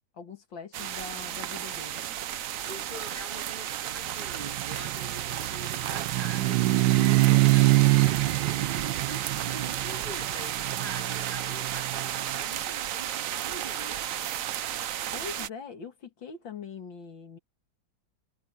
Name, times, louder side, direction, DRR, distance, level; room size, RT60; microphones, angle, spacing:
voice 1, 0.1-2.0 15.1-17.4, left 5 dB, 80° left, 2.8 m, -42 dB
sound 1, 0.7-15.5, right 11 dB, 60° right, 0.9 m, -33 dB
voice 2, 2.6-14.1, right 1 dB, 25° right, 3.4 m, -44 dB
sound 2, 4.2-12.2, right 18 dB, 85° right, 1.3 m, -25 dB
omnidirectional pair, 2.0 m